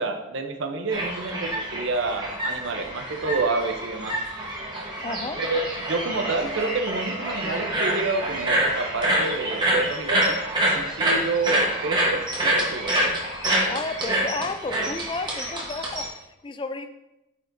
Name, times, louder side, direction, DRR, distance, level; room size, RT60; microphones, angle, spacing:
voice 1, 0.0-4.2 5.4-10.4 10.7-12.9, right 3 dB, 60° right, 6 dB, 0.6 m, -28 dB
sound 1, 0.9-16.1, right 1 dB, 20° right, 1.1 m, -26 dB
voice 2, 5.0-5.4 13.7-16.9, left 3 dB, 25° left, 9 dB, 0.3 m, -32 dB
8.1 x 4.9 x 2.6 m, 0.92 s
head